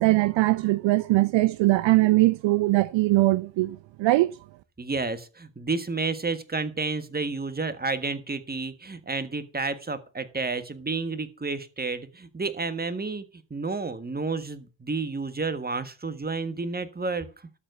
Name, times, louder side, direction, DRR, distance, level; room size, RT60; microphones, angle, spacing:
voice 1, 0.0-4.3, right 19 dB, 65° right, 0.6 m, -21 dB
voice 2, 4.8-13.2 13.5-17.3, right 3 dB, 20° right, 1.6 m, -30 dB
13.0 x 4.4 x 8.1 m
supercardioid pair, 60°, 48 cm